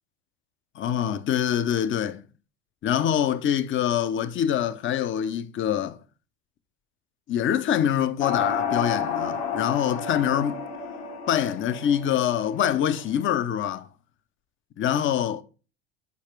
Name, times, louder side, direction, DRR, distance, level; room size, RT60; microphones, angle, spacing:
voice 1, 0.8-2.2 2.8-6.0 7.3-10.6 11.3-13.9 14.8-15.4, left 10 dB, 40° left, 0.8 m, -25 dB
sound 1, 8.2-13.2, left 6 dB, 65° left, 1.9 m, -31 dB
7.0 x 4.8 x 4.5 m
supercardioid pair, 100°, 31 cm